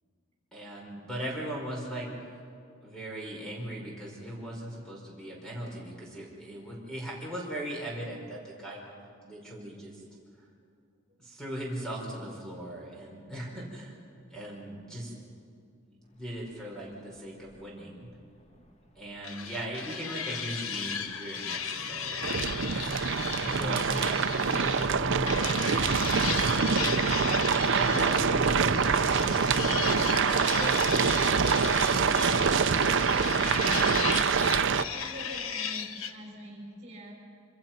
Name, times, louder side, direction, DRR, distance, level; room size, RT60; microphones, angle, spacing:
voice 1, 0.5-2.1 2.8-8.9 9.2-10.0 10.4-10.5 11.2-14.0 14.3-15.1 15.8-18.1 18.9-22.9 23.4-24.2 24.5-26.4 27.5-32.4 34.0-34.1, right 1 dB, 5° left, -3 dB, 5.2 m, -39 dB
sound 1, 16.4-16.6 17.5-17.6 18.0-18.1 18.4-18.7 19.1-35.5, right 1 dB, 30° left, 1.7 m, -42 dB
sound 2, 19.2-24.9 25.3-36.1, left 7 dB, 75° left, 1.3 m, -36 dB
sound 3, 22.2-34.8, right 5 dB, 60° right, 0.7 m, -25 dB
voice 2, 33.3-33.9 34.9-37.4, equal, 35° right, 0 dB, 5.4 m, -44 dB
26.5 x 26.0 x 6.0 m, 2.3 s
head